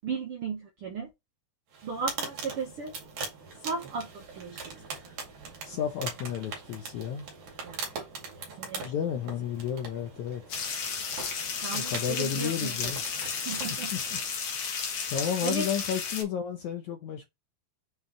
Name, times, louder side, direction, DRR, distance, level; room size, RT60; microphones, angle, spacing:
voice 1, 0.0-1.1 1.8-2.9 3.6-4.8 7.6-8.0 8.3-8.9 11.6-12.9 13.3-13.9 14.7-14.9 15.4-15.7, right 4 dB, 80° right, 1.2 m, -36 dB
sound 1, 1.7-14.4, right 4 dB, 55° right, 3.4 m, -42 dB
voice 2, 5.6-7.3 8.8-10.4 11.7-13.0 13.9-14.2 15.1-17.3, left 8 dB, 75° left, 1.8 m, -32 dB
sound 2, 10.5-16.2, left 6 dB, 55° left, 2.4 m, -33 dB
7.1 x 4.7 x 3.1 m
omnidirectional pair, 4.3 m